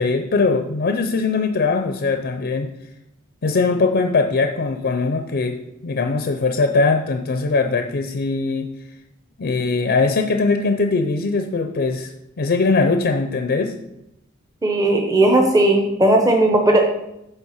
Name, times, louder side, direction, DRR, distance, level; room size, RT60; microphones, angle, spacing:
voice 1, 0.0-2.7 3.4-5.6 5.8-8.7 9.4-12.1 12.4-13.7, left 4 dB, 50° left, 5 dB, 0.5 m, -20 dB
voice 2, 14.6-16.8, right 1 dB, 15° right, 2 dB, 0.7 m, -16 dB
9.1 x 3.3 x 5.7 m, 0.85 s
head